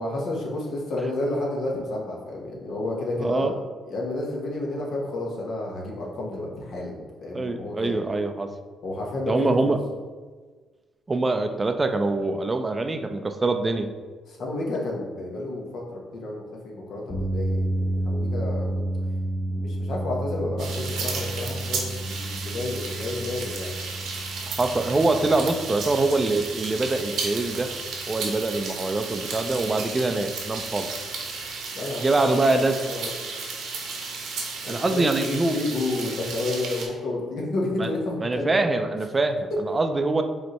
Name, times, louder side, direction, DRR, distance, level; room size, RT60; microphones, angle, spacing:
voice 1, 0.0-3.5 3.9-8.0 8.8-9.8 14.3-15.8 16.1-18.8 19.5-23.7 31.7-33.1 34.6-38.6, left 2 dB, 65° left, -2 dB, 1.1 m, -31 dB
voice 2, 3.2-3.5 7.3-8.5 9.3-9.8 11.1-13.9 24.5-27.7 28.1-30.9 32.0-32.8 34.7-35.6 37.8-37.9 38.2-40.2, right 2 dB, 25° right, 7 dB, 0.4 m, -24 dB
sound 1, 17.1-31.4, right 1 dB, 25° left, 0.8 m, -32 dB
sound 2, 20.6-36.9, right 4 dB, 75° right, 0.9 m, -34 dB
5.2 x 3.2 x 3.0 m, 1.4 s
cardioid pair, 90°, 0 cm